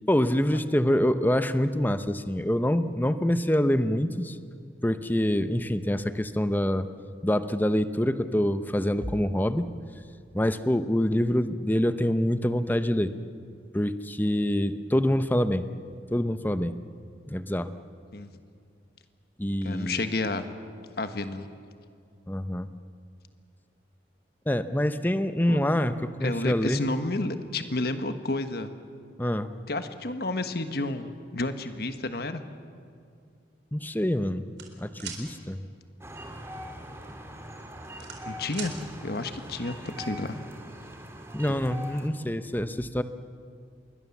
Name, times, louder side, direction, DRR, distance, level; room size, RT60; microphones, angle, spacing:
voice 1, 0.1-4.4 4.8-6.9 7.2-9.7 10.3-13.1 13.7-15.7 16.1-16.7 17.3-17.7 19.4-20.0 22.3-22.7 24.5-26.8 29.2-29.5 33.7-34.5 34.8-35.6 41.3-43.0, equal, 10° left, 11 dB, 0.8 m, -26 dB
voice 2, 19.6-20.5 21.0-21.5 25.5-25.6 26.2-28.7 29.7-32.4 38.3-40.4 41.5-41.6, left 2 dB, 60° left, 9 dB, 1.4 m, -31 dB
sound 1, 34.6-35.2 36.9-37.1 37.5-38.7, right 8 dB, 80° right, 4.0 m, -39 dB
sound 2, 36.0-42.1, equal, 15° right, 2.2 m, -42 dB
27.5 x 22.5 x 7.3 m, 2.3 s
head